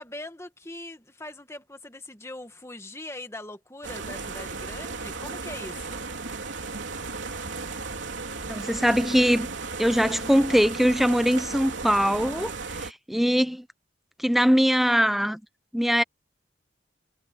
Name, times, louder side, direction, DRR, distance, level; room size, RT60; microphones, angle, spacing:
voice 1, 0.0-6.0 13.1-13.6, left 1 dB, 15° left, 1.6 m, -41 dB
sound 1, 3.8-12.9, right 4 dB, 80° right, 3.4 m, -35 dB
voice 2, 8.5-9.5 9.8-13.6 14.2-15.4 15.7-16.0, equal, ahead, 0.5 m, -22 dB
head